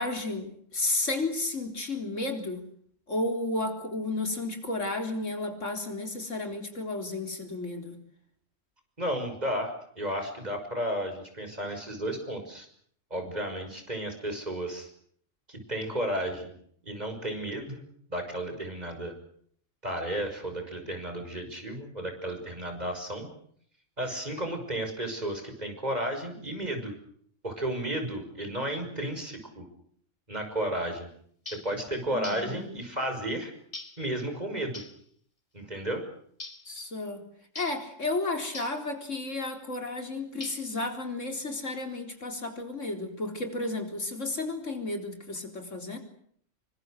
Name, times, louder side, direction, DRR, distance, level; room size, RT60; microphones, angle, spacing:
voice 1, 0.0-2.6 3.1-8.0 32.1-32.7 36.7-37.2 37.6-46.0, left 2 dB, 75° left, 5 dB, 4.3 m, -32 dB
voice 2, 9.0-12.7 13.1-14.9 15.5-16.5 16.8-17.8 18.1-19.2 19.8-23.3 24.0-26.9 27.4-29.6 30.3-31.1 31.5-33.5 34.0-34.8 35.5-36.0, right 1 dB, 35° right, 5 dB, 6.2 m, -33 dB
sound 1, 31.5-31.8 32.2-32.5 33.7-34.0 34.7-35.0 36.4-36.7 37.6-37.9 38.5-38.8 40.4-40.8, left 2 dB, 25° left, 2.4 m, -42 dB
27.0 x 24.5 x 6.6 m, 0.64 s
omnidirectional pair, 1.3 m